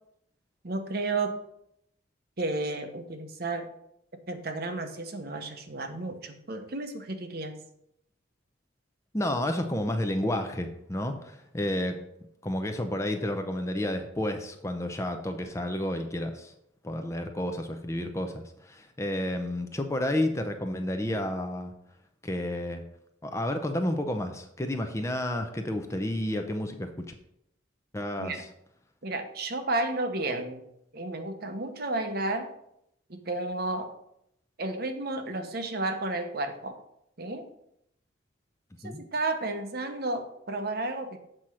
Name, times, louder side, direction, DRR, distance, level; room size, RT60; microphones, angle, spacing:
voice 1, 0.6-1.4 2.4-3.7 4.3-7.5 28.2-28.4 29.0-30.7 30.9-32.5 33.1-33.9 34.6-36.8 37.2-37.5 38.8-41.2, right 2 dB, 50° right, 6 dB, 0.9 m, -32 dB
voice 2, 9.1-12.0 12.4-16.5 16.8-21.7 22.2-22.8 23.2-27.1 27.9-28.5 38.8-39.0, left 1 dB, 15° left, 6 dB, 0.6 m, -31 dB
7.7 x 4.3 x 6.2 m, 0.76 s
head